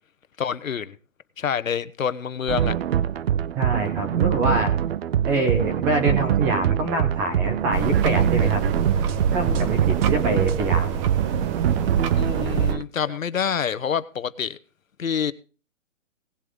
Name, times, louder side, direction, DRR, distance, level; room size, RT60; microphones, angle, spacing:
voice 1, 0.4-1.0 1.4-2.7 12.2-14.6 15.0-15.3, left 7 dB, 90° left, 1.1 m, -27 dB
sound 1, 2.5-12.8, right 10 dB, 50° right, 0.6 m, -24 dB
voice 2, 3.6-4.7 5.2-8.6 9.3-10.9 13.1-13.2, right 2 dB, 5° right, 0.4 m, -25 dB
sound 2, 7.7-12.7, right 6 dB, 25° right, 0.9 m, -26 dB
18.0 x 7.9 x 3.8 m
hypercardioid pair, 145°, 39 cm